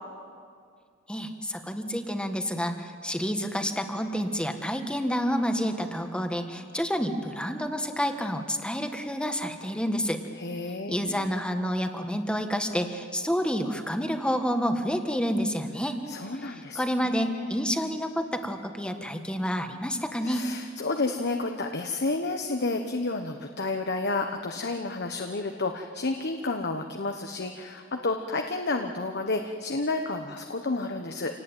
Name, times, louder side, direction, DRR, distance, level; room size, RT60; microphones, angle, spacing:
voice 1, 1.1-10.2 10.9-16.0 16.5-20.4, equal, 5° left, 5 dB, 1.7 m, -29 dB
voice 2, 10.4-11.3 16.1-17.6 20.2-31.4, left 3 dB, 55° left, 5 dB, 1.2 m, -31 dB
27.5 x 18.5 x 9.1 m, 2.2 s
head